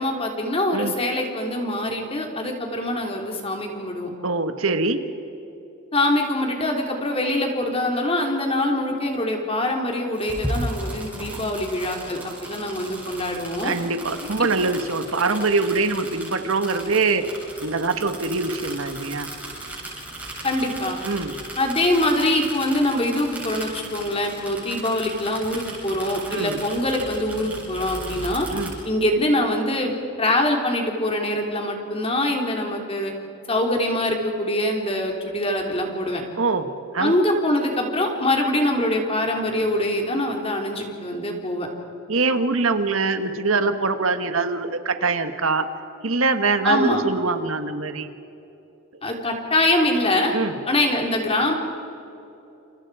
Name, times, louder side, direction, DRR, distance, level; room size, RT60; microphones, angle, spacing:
voice 1, 0.0-4.1 5.9-13.7 14.4-14.5 20.4-21.0 21.6-28.5 28.9-33.1 33.5-36.2 37.0-41.7 46.6-47.0 49.0-50.3 50.7-51.5, left 1 dB, 25° left, 2 dB, 3.4 m, -24 dB
voice 2, 4.2-5.1 13.6-17.3 17.6-19.3 21.0-21.4 26.3-26.6 28.5-28.7 36.4-37.1 42.1-45.6 46.0-48.1 50.3-50.6, right 3 dB, 70° right, 8 dB, 1.5 m, -23 dB
sound 1, 10.1-28.7, right 1 dB, 5° right, 7.9 m, -36 dB
29.5 x 28.5 x 5.0 m, 2.9 s
head